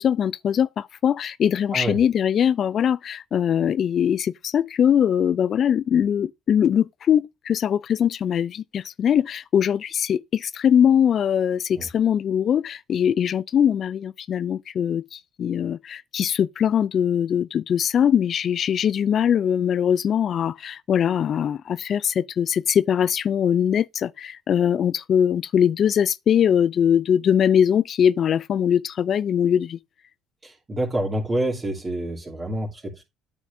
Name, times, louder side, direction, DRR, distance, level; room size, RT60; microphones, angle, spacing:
voice 1, 0.0-29.8, left 8 dB, 50° left, 0.4 m, -21 dB
voice 2, 30.4-33.0, right 1 dB, 25° right, 2.8 m, -27 dB
9.2 x 7.0 x 2.7 m
supercardioid pair, 70°, 0 cm